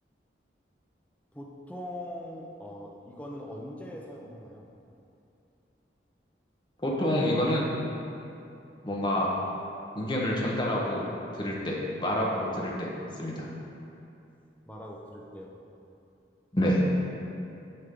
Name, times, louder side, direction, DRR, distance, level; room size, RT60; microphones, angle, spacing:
voice 1, 1.3-4.7 14.7-15.6, left 1 dB, 10° left, -2 dB, 0.7 m, -41 dB
voice 2, 6.8-7.7 8.8-9.3 9.9-11.0 11.3-12.9 13.2-13.5 16.5-16.8, equal, 25° left, -4 dB, 1.0 m, -27 dB
7.3 x 6.8 x 3.7 m, 2.7 s
head